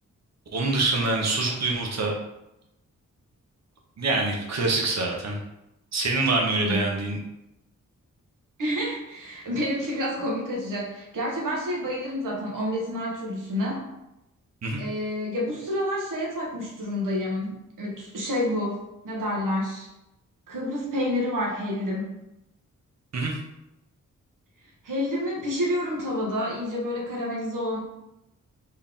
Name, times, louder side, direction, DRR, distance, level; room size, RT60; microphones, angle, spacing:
voice 1, 0.5-2.1 4.0-5.4 5.9-7.2 14.6-14.8 23.1-23.4, right 3 dB, 55° right, 0 dB, 1.1 m, -25 dB
voice 2, 6.4-6.8 8.6-13.9 14.8-19.9 20.5-22.1 24.8-27.8, left 1 dB, 85° right, -2 dB, 1.4 m, -29 dB
4.5 x 3.1 x 3.6 m, 0.89 s
wide cardioid pair, 120°, 31 cm